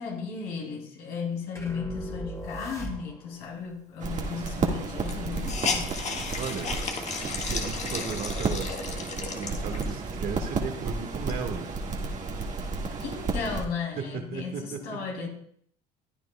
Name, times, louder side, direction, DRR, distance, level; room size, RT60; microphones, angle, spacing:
voice 1, 0.0-6.0 13.0-15.3, left 5 dB, 75° left, 0 dB, 3.0 m, -35 dB
sound 1, 1.6-3.4, right 1 dB, 20° left, 2.3 m, -38 dB
sound 2, 4.0-13.7, right 3 dB, 50° right, 1.8 m, -32 dB
Hiss, 4.2-4.3 4.5-4.6 5.0-10.1 10.6-10.7 11.1-12.5, left 4 dB, 45° left, 1.6 m, -34 dB
voice 2, 6.3-6.8 7.3-8.8 9.2-11.7 14.0-15.0, right 5 dB, 65° right, 4 dB, 1.7 m, -36 dB
15.0 x 9.5 x 2.3 m, 0.64 s
supercardioid pair, 80°, 17 cm